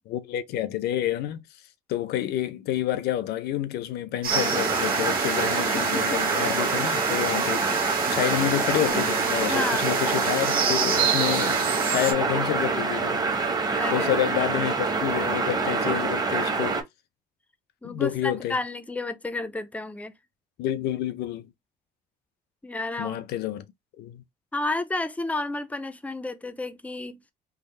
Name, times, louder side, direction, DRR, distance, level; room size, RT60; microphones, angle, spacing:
voice 1, 0.1-1.4 1.9-13.4 13.9-16.8 17.8-18.6 20.6-21.5 23.0-23.7 24.0-24.2, left 12 dB, 75° left, 0.6 m, -29 dB
sound 1, 4.2-12.1, right 6 dB, 60° right, 1.2 m, -29 dB
sound 2, 4.3-16.8, right 4 dB, 25° right, 0.8 m, -26 dB
voice 2, 9.5-9.9 13.8-14.2 17.8-20.1 22.6-23.2 24.5-27.2, left 2 dB, 10° left, 0.4 m, -31 dB
3.5 x 2.0 x 3.2 m
cardioid pair, 110°, 17 cm